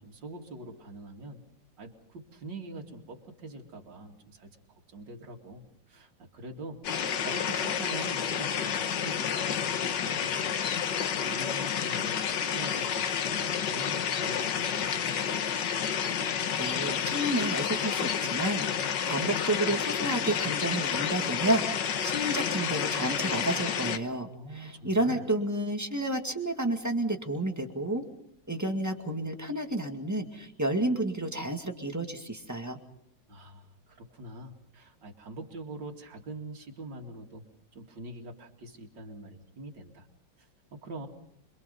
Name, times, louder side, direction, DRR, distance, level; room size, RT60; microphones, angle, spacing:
voice 1, 0.0-1.4 1.8-4.6 4.9-6.8 7.2-10.6 10.9-12.2 12.5-15.3 24.3-25.3 33.3-37.4 37.7-40.1 40.4-41.1, right 2 dB, 70° right, 1 dB, 3.0 m, -44 dB
sound 1, 6.8-24.0, left 8 dB, 70° left, 1.8 m, -30 dB
voice 2, 16.6-24.3 24.5-28.0 28.5-32.8, right 1 dB, 10° right, 4 dB, 1.9 m, -31 dB
27.0 x 22.5 x 5.4 m, 0.73 s
omnidirectional pair, 2.0 m